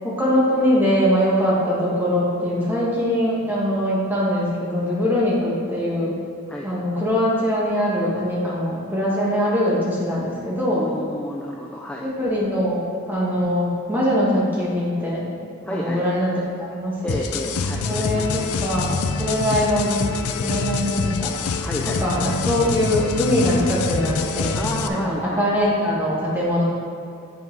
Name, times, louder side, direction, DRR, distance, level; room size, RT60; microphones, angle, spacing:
voice 1, 0.0-6.1 6.6-10.9 12.0-15.3 15.7-16.3 16.6-17.2 17.8-20.1 20.4-21.3 22.0-24.6 24.9-26.6, equal, 10° right, -6 dB, 1.6 m, -22 dB
voice 2, 10.7-12.1 15.6-16.3 17.0-18.5 21.4-22.0 24.5-25.5, equal, 5° left, -2 dB, 0.4 m, -31 dB
sound 1, 17.1-24.9, left 4 dB, 85° left, 0.5 m, -25 dB
7.9 x 5.5 x 4.6 m, 2.5 s
head